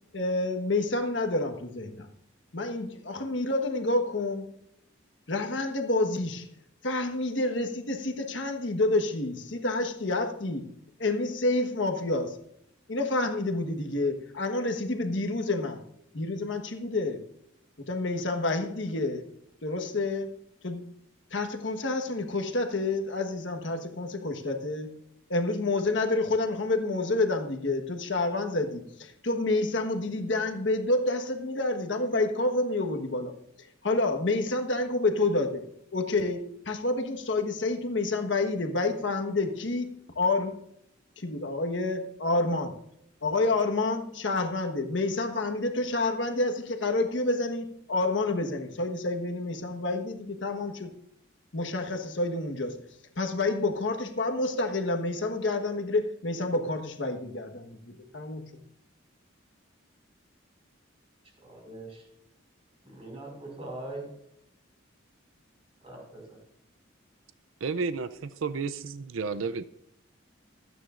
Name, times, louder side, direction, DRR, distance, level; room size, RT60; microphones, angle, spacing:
voice 1, 0.1-2.1 2.5-4.5 5.3-6.5 6.8-10.7 11.0-12.4 12.9-15.8 16.1-17.2 17.9-19.3 19.6-20.3 20.6-20.9 21.3-24.9 25.3-33.4 33.8-40.6 41.2-42.7 43.2-50.9 51.5-52.8 53.2-58.6, left 2 dB, 65° left, 5 dB, 1.3 m, -28 dB
voice 2, 61.4-62.0 62.8-64.0 65.8-66.4, right 2 dB, 30° right, 0 dB, 5.0 m, -41 dB
voice 3, 67.6-69.6, right 4 dB, 85° right, 12 dB, 0.5 m, -32 dB
25.5 x 9.3 x 2.5 m, 0.74 s
head